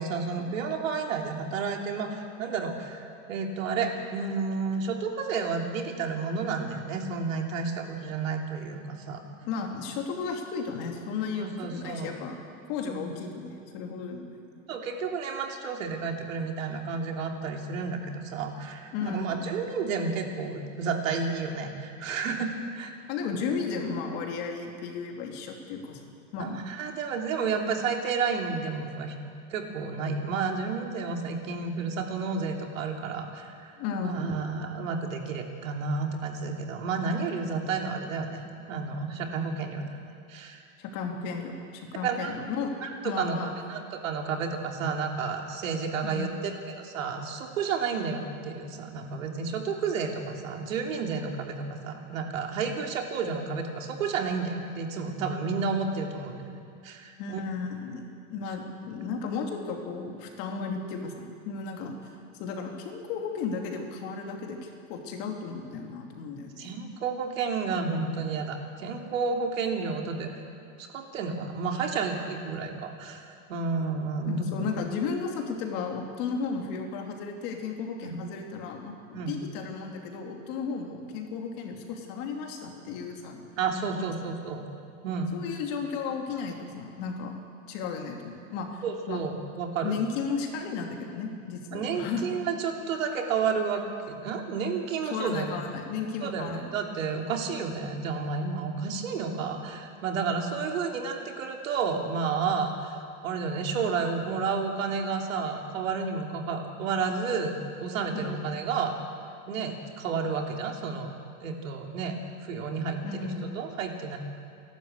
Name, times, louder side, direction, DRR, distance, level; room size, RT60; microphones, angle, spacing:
voice 1, 0.0-9.2 11.4-12.1 12.9-13.1 14.7-22.9 26.4-29.1 29.5-40.0 40.3-40.6 42.0-42.3 42.8-56.5 56.8-57.4 66.6-70.4 70.8-74.7 78.0-78.2 79.1-79.3 83.6-84.6 85.0-85.4 88.8-89.9 91.7-95.6 96.2-103.0 103.2-108.9 109.5-111.1 111.4-114.2, right 5 dB, 80° right, 2 dB, 3.2 m, -31 dB
voice 2, 9.4-12.4 12.7-14.4 18.9-19.5 23.1-26.0 26.3-26.6 33.8-34.4 40.8-42.7 43.0-43.5 46.0-46.4 57.2-62.0 62.4-66.8 74.2-83.4 84.0-84.1 85.3-87.3 87.7-89.2 89.8-92.3 95.1-96.7 108.1-108.4 113.0-113.6, left 5 dB, 40° left, 2 dB, 2.9 m, -34 dB
28.5 x 12.5 x 8.2 m, 2.4 s
supercardioid pair, 160°, 39 cm